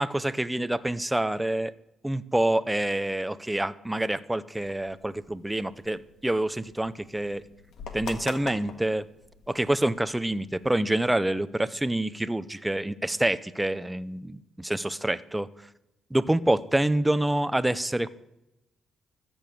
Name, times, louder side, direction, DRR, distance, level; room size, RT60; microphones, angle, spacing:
voice 1, 0.0-1.7 2.0-7.4 7.9-9.0 9.5-15.5 16.1-18.1, right 1 dB, 10° right, 14 dB, 0.6 m, -27 dB
sound 1, 4.6-10.7, left 5 dB, 70° left, 1.8 m, -45 dB
14.0 x 7.0 x 7.7 m, 0.91 s
cardioid pair, 90°, 0 cm